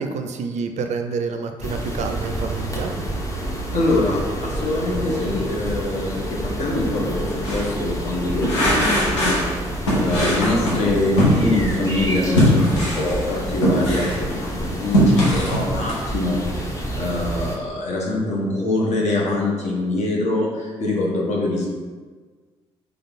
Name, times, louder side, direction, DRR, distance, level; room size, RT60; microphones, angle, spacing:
voice 1, 0.0-2.9, right 5 dB, 50° right, 6 dB, 0.4 m, -28 dB
sound 1, 1.6-17.6, right 1 dB, 20° left, 0.9 m, -28 dB
voice 2, 3.7-9.4 9.9-21.7, left 2 dB, 50° left, -3 dB, 1.2 m, -24 dB
sound 2, 7.4-7.7 8.4-9.5 9.9-11.9 12.4-14.3 14.7-16.0, equal, 85° left, 0.8 m, -20 dB
3.4 x 3.4 x 4.0 m, 1.5 s
figure-of-eight pair, 45°, 15 cm